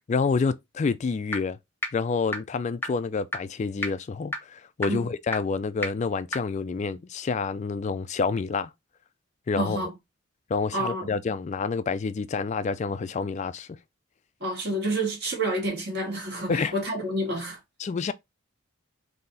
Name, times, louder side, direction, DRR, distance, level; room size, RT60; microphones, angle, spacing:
voice 1, 0.1-1.6 1.9-8.7 9.5-9.8 10.5-13.8 16.5-16.7 17.8-18.1, left 4 dB, 35° left, 0.3 m, -28 dB
sound 1, 1.3-1.4 1.8-1.9 2.3-2.4 2.8-2.9 3.3-3.4 3.8-3.9 4.3-4.4 4.8-4.9 5.3-5.4 5.8-5.9 6.3-6.4, left 2 dB, 10° left, 0.9 m, -28 dB
voice 2, 9.6-9.9 10.7-11.1 14.4-17.6, right 1 dB, 50° right, 2.0 m, -29 dB
3.9 x 2.8 x 3.9 m
head